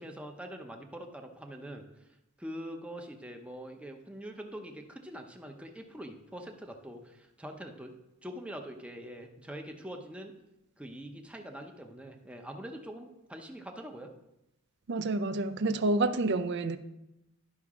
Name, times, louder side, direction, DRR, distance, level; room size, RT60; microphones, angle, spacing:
voice 1, 0.0-1.8 2.4-7.9 8.2-10.3 10.8-14.1, equal, 5° right, 3 dB, 0.7 m, -44 dB
voice 2, 14.9-16.8, right 2 dB, 55° right, 12 dB, 0.5 m, -28 dB
11.0 x 5.8 x 3.7 m, 0.92 s
head